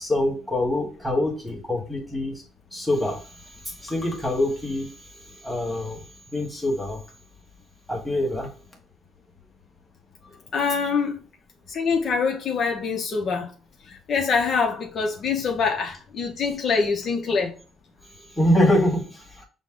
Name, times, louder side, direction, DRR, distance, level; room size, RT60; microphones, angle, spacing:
voice 1, 0.0-2.4 2.7-7.0 7.9-8.5 18.1-19.4, left 1 dB, ahead, 1.3 m, -25 dB
voice 2, 10.5-11.2 11.7-13.5 14.1-17.5, left 5 dB, 45° left, 0.7 m, -24 dB
6.2 x 2.1 x 3.7 m
cardioid pair, 135°, 0 cm